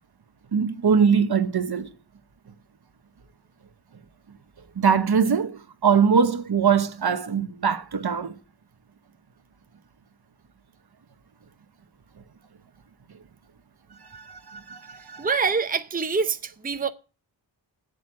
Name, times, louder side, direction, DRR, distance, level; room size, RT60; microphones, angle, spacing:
voice 1, 0.5-1.9 4.8-8.3 14.1-15.3, right 6 dB, 55° right, 1.1 m, -22 dB
voice 2, 15.2-16.9, right 5 dB, 20° right, 0.7 m, -25 dB
8.0 x 7.9 x 8.7 m
wide cardioid pair, 70°, 46 cm